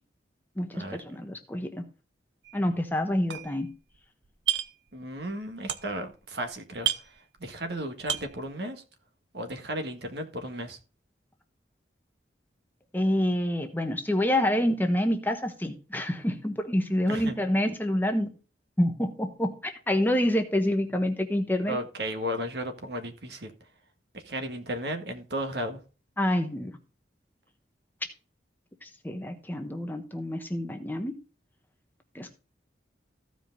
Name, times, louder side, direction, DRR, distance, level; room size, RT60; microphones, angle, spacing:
voice 1, 0.6-1.8 2.5-3.7 12.9-18.3 18.8-21.8 26.2-26.8 28.8-31.2 32.1-32.3, left 1 dB, 10° left, 5 dB, 1.1 m, -27 dB
sound 1, 2.4-2.7 3.0-4.0 4.2-4.9 5.2-6.2 6.4-6.5 6.7-7.7 8.0-8.5, right 10 dB, 80° right, 0.9 m, -31 dB
voice 2, 4.9-8.8 9.3-10.8 17.1-17.4 21.7-23.5 24.1-25.8, equal, 65° right, 5 dB, 1.7 m, -34 dB
15.0 x 5.1 x 3.9 m, 0.34 s
head